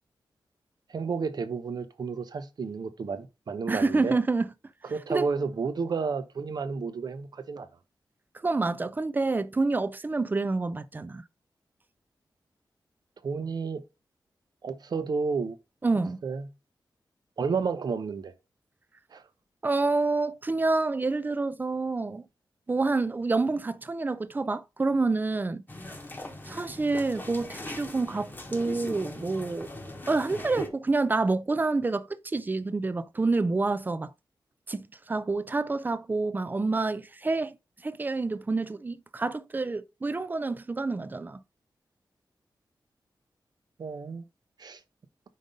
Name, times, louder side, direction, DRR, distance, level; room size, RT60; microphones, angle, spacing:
voice 1, 0.9-4.2 4.8-7.7 13.2-13.8 14.6-15.6 16.2-16.4 17.4-18.3 19.1-19.2 43.8-44.2 44.6-44.8, right 5 dB, 60° right, 0.8 m, -31 dB
voice 2, 3.7-4.5 5.1-5.3 8.4-11.2 15.8-16.2 19.6-22.3 22.7-25.6 26.5-29.7 30.1-34.1 34.7-37.6 37.8-41.4, right 3 dB, 25° right, 0.4 m, -28 dB
sound 1, 25.7-30.7, left 2 dB, 25° left, 1.1 m, -40 dB
5.3 x 3.9 x 5.2 m
wide cardioid pair, 140°, 8 cm